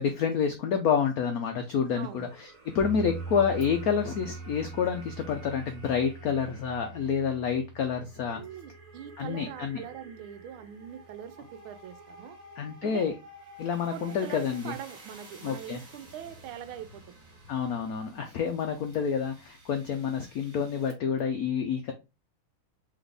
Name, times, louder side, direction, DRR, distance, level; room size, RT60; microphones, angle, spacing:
voice 1, 0.0-8.4 9.2-9.8 12.6-13.2 13.6-14.7 15.4-15.8 17.5-21.9, left 7 dB, 85° left, 0.8 m, -28 dB
sound 1, 1.6-20.9, right 2 dB, 40° right, 2.0 m, -52 dB
voice 2, 2.0-2.3 8.3-12.4 12.8-13.2 13.9-17.1, right 9 dB, 85° right, 1.4 m, -42 dB
sound 2, 2.8-10.9, right 4 dB, 45° left, 1.0 m, -43 dB
3.9 x 3.5 x 3.3 m
omnidirectional pair, 2.2 m